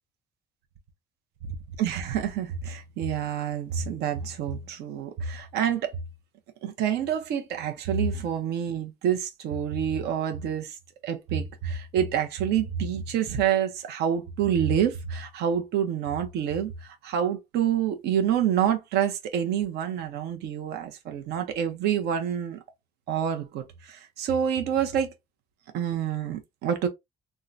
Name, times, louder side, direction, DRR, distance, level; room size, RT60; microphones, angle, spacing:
voice 1, 1.4-6.0 6.6-10.8 11.0-22.6 23.1-25.1 25.7-26.9, right 9 dB, 80° right, 0.8 m, -27 dB
3.6 x 2.2 x 2.5 m
cardioid pair, 110°, 17 cm